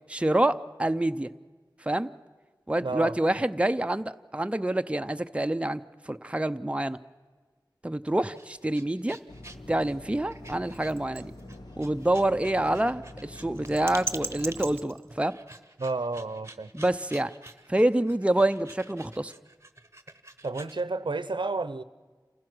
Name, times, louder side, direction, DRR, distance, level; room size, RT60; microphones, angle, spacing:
voice 1, 0.1-1.3 1.8-2.1 2.7-5.8 6.1-7.0 7.8-9.2 9.7-11.3 11.8-15.4 16.7-17.3 17.7-19.3, right 1 dB, 15° right, 10 dB, 0.5 m, -27 dB
voice 2, 2.8-3.1 15.8-16.7 20.4-21.8, right 3 dB, 85° right, 13 dB, 0.6 m, -31 dB
sound 1, 8.1-20.8, right 2 dB, 35° right, 1.0 m, -43 dB
sound 2, 9.3-14.8, left 1 dB, 60° left, 1.1 m, -46 dB
28.0 x 15.5 x 6.1 m, 1.4 s
wide cardioid pair, 45°, 8 cm